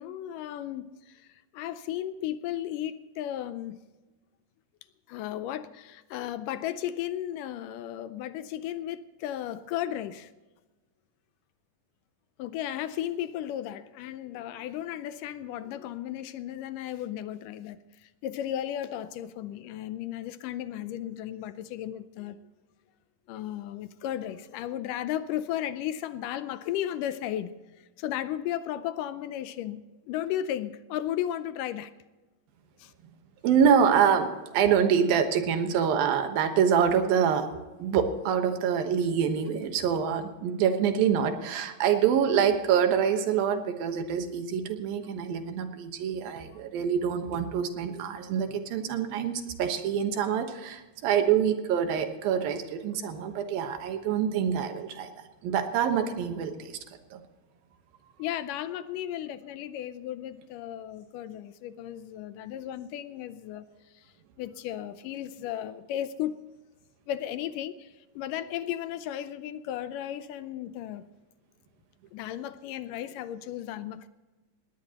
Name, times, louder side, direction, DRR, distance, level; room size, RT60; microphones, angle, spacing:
voice 1, 0.0-3.8 5.1-10.3 12.4-22.5 23.3-31.9 32.8-32.9 58.2-63.7 63.9-64.1 64.4-66.4 67.1-71.0 72.1-74.1, left 11 dB, 80° left, 13 dB, 2.1 m, -35 dB
voice 2, 33.4-55.1 55.4-56.8 57.1-57.2, right 7 dB, 90° right, 7 dB, 3.1 m, -26 dB
20.0 x 17.5 x 2.9 m, 1.2 s
omnidirectional pair, 4.0 m